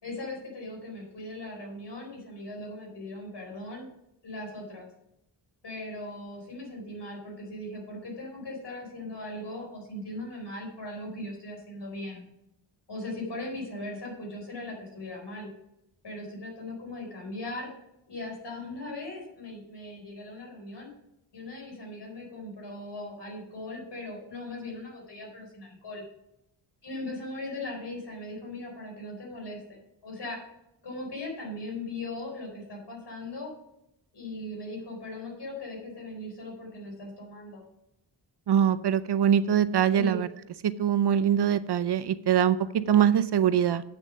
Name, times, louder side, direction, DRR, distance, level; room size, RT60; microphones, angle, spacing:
voice 1, 0.0-3.9 4.2-4.9 5.6-12.2 12.9-15.5 16.0-17.7 18.1-20.9 21.3-26.0 26.8-29.8 30.0-30.4 30.8-33.5 34.1-37.6 39.9-40.2, left 2 dB, 60° left, -1 dB, 4.1 m, -39 dB
voice 2, 38.5-40.3 40.6-43.8, right 9 dB, 60° right, 15 dB, 0.5 m, -23 dB
8.6 x 6.6 x 5.2 m, 0.86 s
wide cardioid pair, 105°, 46 cm